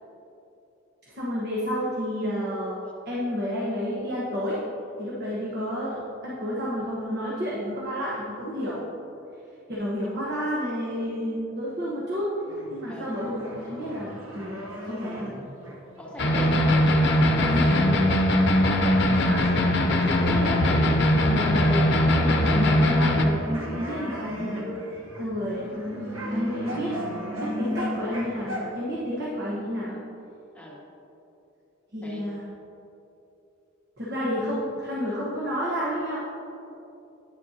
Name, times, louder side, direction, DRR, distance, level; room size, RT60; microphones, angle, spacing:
voice 1, 1.1-2.8 3.0-4.6 5.0-8.9 9.7-12.3 12.7-15.3 16.4-16.6 17.5-17.8 19.1-19.8 20.0-20.8 21.2-24.8 25.2-25.7 26.2-27.0 27.4-29.9 31.9-32.4 34.0-36.2, equal, 55° right, -6 dB, 1.2 m, -30 dB
sound 1, 12.5-18.8 19.1-28.7, equal, 85° right, 1.1 m, -37 dB
voice 2, 16.0-16.5 18.7-19.1 30.5-30.8 32.0-32.3, equal, 5° left, -3 dB, 1.0 m, -38 dB
sound 2, 16.2-23.2, left 1 dB, 60° left, 0.7 m, -21 dB
9.8 x 7.4 x 2.8 m, 2.9 s
head